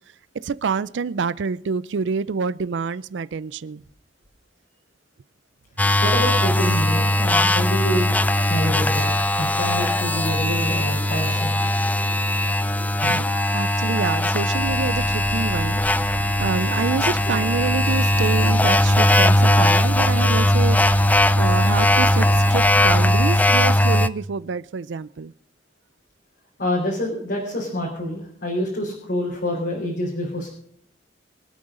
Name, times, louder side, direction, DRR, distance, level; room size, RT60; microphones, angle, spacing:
voice 1, 0.4-3.8 13.0-21.0 21.4-25.3, right 5 dB, 70° right, 0.4 m, -27 dB
sound 1, 5.8-24.1, left 1 dB, 10° left, 0.4 m, -19 dB
voice 2, 6.0-8.1 8.5-9.1 9.4-11.5 26.6-30.5, equal, 60° left, 4.1 m, -27 dB
sound 2, 14.5-23.3, equal, 15° right, 1.9 m, -36 dB
24.5 x 8.7 x 3.8 m
head